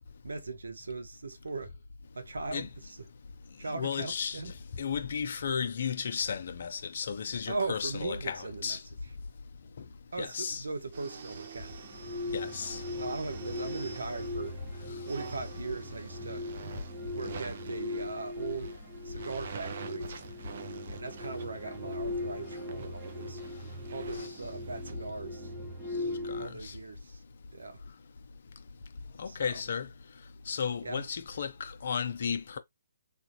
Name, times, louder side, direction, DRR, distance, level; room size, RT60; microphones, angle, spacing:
voice 1, 0.2-1.7 2.1-3.0 3.6-4.5 7.5-8.8 10.1-11.8 13.0-14.6 15.0-16.5 17.1-18.7 19.0-20.2 20.9-23.4 23.9-25.5 26.4-27.2 27.5-27.8 29.2-29.6 30.8-31.1, right 3 dB, 80° right, 0.9 m, -39 dB
voice 2, 3.7-4.4 4.8-8.8 10.2-10.6 12.3-12.8 26.3-26.7 29.2-29.9 30.5-32.6, left 6 dB, 55° left, 0.7 m, -34 dB
sound 1, 10.9-24.9, right 6 dB, 50° right, 0.6 m, -48 dB
sound 2, 11.8-26.5, left 2 dB, 15° right, 0.9 m, -39 dB
3.4 x 2.4 x 2.9 m
hypercardioid pair, 145°, 0 cm